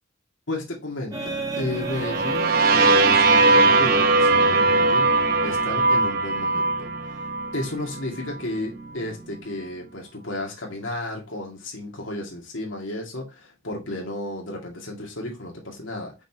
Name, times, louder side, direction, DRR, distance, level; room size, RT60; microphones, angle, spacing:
voice 1, 0.5-7.3 7.5-16.2, left 1 dB, 85° left, 2.3 m, -33 dB
sound 1, 1.1-10.0, right 2 dB, 20° right, 1.0 m, -37 dB
sound 2, 1.8-7.7, right 3 dB, 50° right, 1.0 m, -19 dB
6.0 x 5.4 x 2.9 m
head